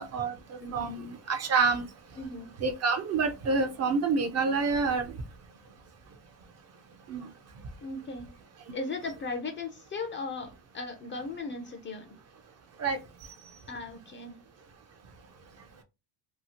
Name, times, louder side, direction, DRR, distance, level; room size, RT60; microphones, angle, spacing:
voice 1, 0.0-1.9 2.6-5.1 7.1-7.3 12.8-13.0, right 4 dB, 35° right, 0.4 m, -28 dB
voice 2, 0.6-0.9 2.2-2.5 7.8-8.3 8.7-12.2 13.7-14.4, left 3 dB, 25° left, 0.4 m, -37 dB
2.8 x 2.7 x 2.8 m
cardioid pair, 140°, 46 cm